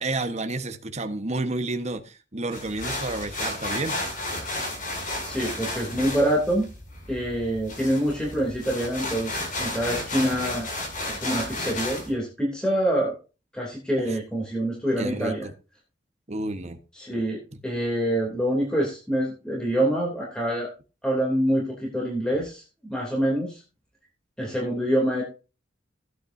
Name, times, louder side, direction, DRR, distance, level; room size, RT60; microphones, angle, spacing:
voice 1, 0.0-4.0 14.0-14.2 15.0-15.5 16.3-16.8, right 2 dB, 40° right, 7 dB, 1.3 m, -30 dB
sound 1, 2.5-12.1, left 2 dB, 45° left, 6.4 m, -32 dB
voice 2, 5.3-6.7 7.1-10.7 11.1-13.1 13.5-15.5 16.9-17.4 17.6-20.7 21.0-22.6 22.9-23.6 24.4-25.2, right 1 dB, 5° left, -3 dB, 3.0 m, -26 dB
16.0 x 9.2 x 2.7 m, 0.32 s
head